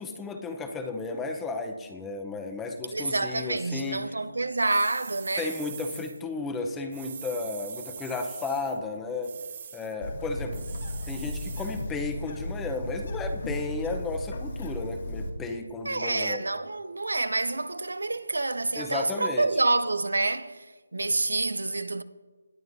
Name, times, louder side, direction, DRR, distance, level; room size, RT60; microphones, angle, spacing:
voice 1, 0.0-4.0 5.4-9.3 9.7-10.6 11.1-16.4 18.8-19.5, left 3 dB, 10° left, 0.8 m, -33 dB
voice 2, 2.9-5.5 15.8-22.0, right 2 dB, 90° right, 0.6 m, -28 dB
sound 1, 4.6-6.2 6.9-8.8 9.2-9.9 10.5-11.9, right 7 dB, 40° right, 0.7 m, -43 dB
Bird, 10.0-15.3, left 1 dB, 50° left, 1.9 m, -35 dB
18.5 x 9.6 x 2.7 m
figure-of-eight pair, 165°, 0 cm